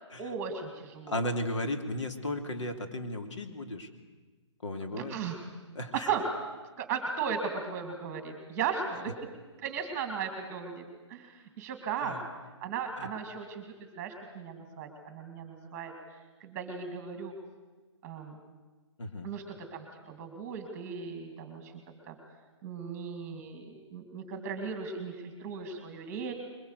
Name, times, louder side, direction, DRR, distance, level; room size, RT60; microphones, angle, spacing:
voice 1, 0.2-1.2 5.0-5.4 5.9-6.2 6.8-9.1 9.6-12.2 12.6-15.9 16.4-17.3 18.0-18.4 19.2-19.4 19.7-21.7 22.1-22.2 22.6-26.3, right 6 dB, 15° right, 5 dB, 2.3 m, -36 dB
voice 2, 1.1-3.9 4.6-5.2 5.7-6.1 12.0-12.2 13.0-13.1 19.0-19.3, left 1 dB, 70° left, 5 dB, 3.1 m, -35 dB
22.0 x 20.5 x 8.2 m, 1.3 s
hypercardioid pair, 170°, 16 cm